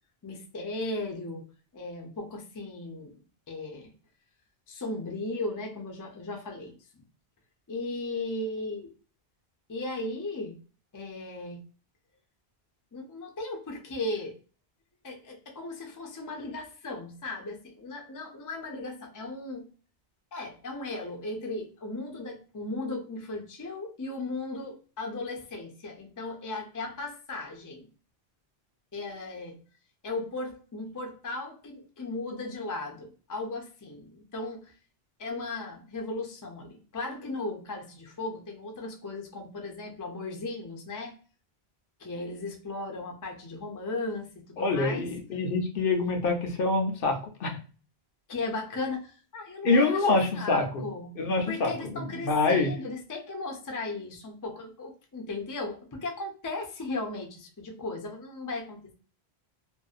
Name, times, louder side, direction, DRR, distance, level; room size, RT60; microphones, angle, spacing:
voice 1, 0.2-1.4 1.7-3.2 3.5-3.9 4.7-7.0 7.7-8.9 9.7-10.6 10.9-11.6 12.9-14.3 15.0-19.7 20.3-27.9 28.9-29.6 30.0-34.7 35.2-41.1 42.0-45.1 48.3-51.2 51.5-58.9, left 2 dB, 25° left, 1 dB, 0.4 m, -36 dB
voice 2, 44.6-47.5 49.6-50.8 51.2-52.7, left 3 dB, 65° left, 2 dB, 0.8 m, -26 dB
2.6 x 2.1 x 2.3 m, 0.38 s
omnidirectional pair, 1.1 m